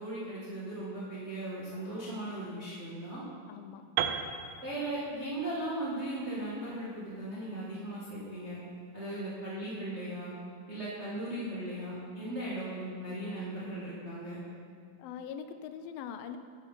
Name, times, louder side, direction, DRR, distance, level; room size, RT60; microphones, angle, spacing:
voice 1, 0.0-3.2 4.6-8.6 8.9-10.3 10.7-14.4, right 1 dB, 65° right, -8 dB, 0.6 m, -37 dB
voice 2, 3.5-3.9 15.0-16.4, left 8 dB, 80° left, 9 dB, 2.2 m, -42 dB
Piano, 4.0-7.9, right 9 dB, 85° right, 2.4 m, -37 dB
10.5 x 6.2 x 5.2 m, 2.2 s
omnidirectional pair, 4.2 m